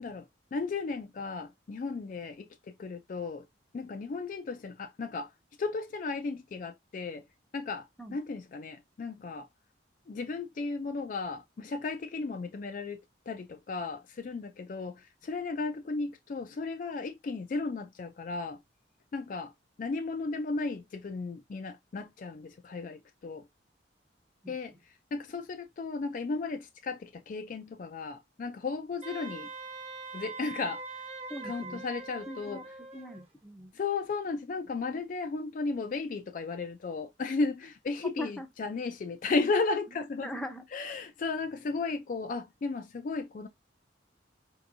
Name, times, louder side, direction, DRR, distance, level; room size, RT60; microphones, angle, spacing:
voice 1, 0.0-3.5 3.7-5.3 5.6-7.3 7.5-9.5 10.1-18.6 19.1-19.5 19.8-23.5 24.5-29.5 30.1-30.8 31.4-32.6 33.7-40.3 40.7-43.5, left 4 dB, 45° left, 0.3 m, -35 dB
Wind instrument woodwind instrument, 29.0-33.2, right 3 dB, 35° right, 1.0 m, -43 dB
voice 2, 31.3-31.8 32.3-32.7 32.9-33.7 38.0-38.5 40.2-40.6, left 1 dB, ahead, 0.6 m, -40 dB
4.4 x 2.7 x 2.6 m
head